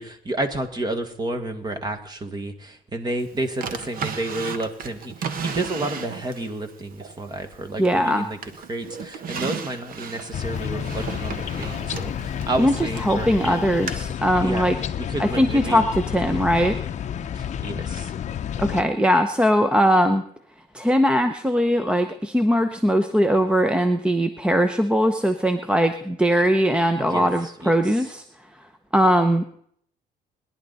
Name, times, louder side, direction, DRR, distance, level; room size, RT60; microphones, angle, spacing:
voice 1, 0.0-8.4 8.7-13.8 14.4-14.7 15.0-15.9 17.3-18.1 27.0-27.8, right 2 dB, 25° right, 6 dB, 1.8 m, -31 dB
Drawer open or close, 3.6-6.5 7.0-8.1 8.4-13.1 13.9-14.0, right 6 dB, 55° right, 1.3 m, -34 dB
voice 2, 7.8-8.3 12.6-12.7 13.0-14.8 15.2-16.8 18.6-20.2 20.7-28.2 28.9-29.4, equal, 5° right, 8 dB, 0.8 m, -20 dB
sound 1, 10.3-18.8, left 9 dB, 45° left, 0.7 m, -30 dB
22.0 x 11.0 x 4.1 m, 0.65 s
cardioid pair, 110°, 17 cm